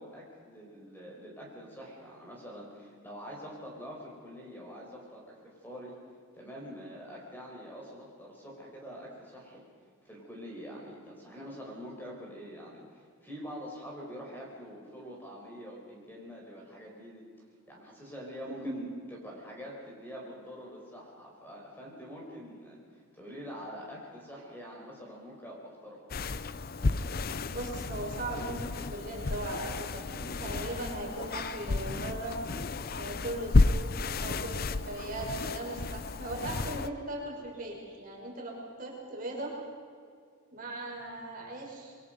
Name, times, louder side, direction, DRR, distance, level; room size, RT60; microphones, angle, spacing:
voice 1, 0.0-6.0 6.3-9.6 10.0-17.2 17.7-22.8 23.1-26.0, equal, 10° left, -3 dB, 5.0 m, -45 dB
voice 2, 18.4-18.7 27.5-32.4 33.0-39.5 40.5-41.9, right 1 dB, 40° right, -2 dB, 5.4 m, -38 dB
sound 1, 26.1-36.9, left 3 dB, 45° left, 0.6 m, -31 dB
27.0 x 23.5 x 5.4 m, 2.1 s
head